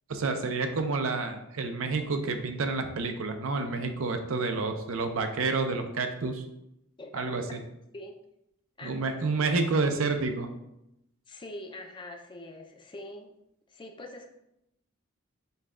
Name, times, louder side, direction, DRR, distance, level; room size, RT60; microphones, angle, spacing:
voice 1, 0.1-6.4 7.1-7.4 8.8-10.5, right 3 dB, 70° right, 6 dB, 0.5 m, -29 dB
voice 2, 8.8-9.2 11.3-13.3 13.7-14.3, left 1 dB, 25° left, 4 dB, 0.4 m, -43 dB
5.4 x 2.3 x 3.6 m, 0.82 s
head